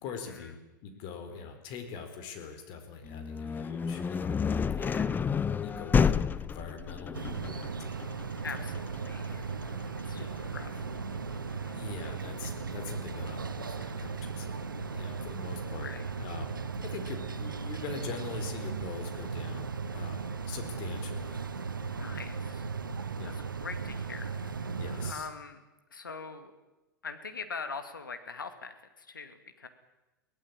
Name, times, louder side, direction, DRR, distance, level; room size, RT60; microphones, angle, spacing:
voice 1, 0.0-4.4 4.7-4.9 5.6-8.3 9.6-10.4 11.7-15.9 16.2-16.6 16.8-21.4 21.7-21.9 23.2-23.4 24.8-25.3, left 5 dB, 45° left, 7 dB, 4.4 m, -43 dB
sound 1, 3.0-12.8, left 6 dB, 15° left, 0.7 m, -31 dB
voice 2, 4.8-5.2 8.4-9.6 10.0-10.9 11.6-12.1 15.8-16.0 21.9-22.7 23.2-25.6 25.9-26.5 27.0-29.7, left 5 dB, 80° left, 8 dB, 2.4 m, -43 dB
sound 2, 7.1-25.1, right 5 dB, 85° right, 1.3 m, -37 dB
23.0 x 17.5 x 8.9 m, 1.0 s
figure-of-eight pair, 90°, 11 cm